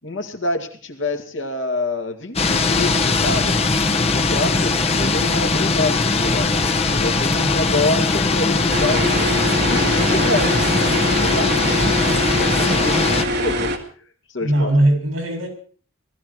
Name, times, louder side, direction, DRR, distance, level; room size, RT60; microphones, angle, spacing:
voice 1, 0.0-3.6 4.0-6.5 6.9-9.3 9.7-13.7 14.3-14.7, left 2 dB, 65° left, 3 dB, 2.3 m, -27 dB
sound 1, 2.4-13.2, left 3 dB, 30° left, 1.1 m, -20 dB
voice 2, 6.8-7.6 14.4-15.5, right 1 dB, 75° right, 3 dB, 7.3 m, -21 dB
sound 2, 8.7-13.8, equal, 55° right, 2.2 m, -23 dB
19.0 x 14.0 x 4.7 m, 0.43 s
head